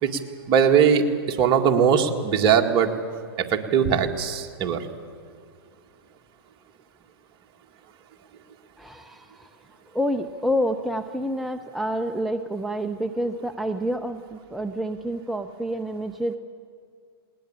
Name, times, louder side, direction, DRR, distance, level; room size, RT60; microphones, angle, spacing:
voice 1, 0.5-2.9 3.4-4.9, right 7 dB, 35° right, 4 dB, 1.9 m, -20 dB
voice 2, 8.8-9.5 9.9-16.4, equal, ahead, 6 dB, 0.7 m, -28 dB
20.5 x 19.0 x 8.9 m, 2.3 s
hypercardioid pair, 120°, 13 cm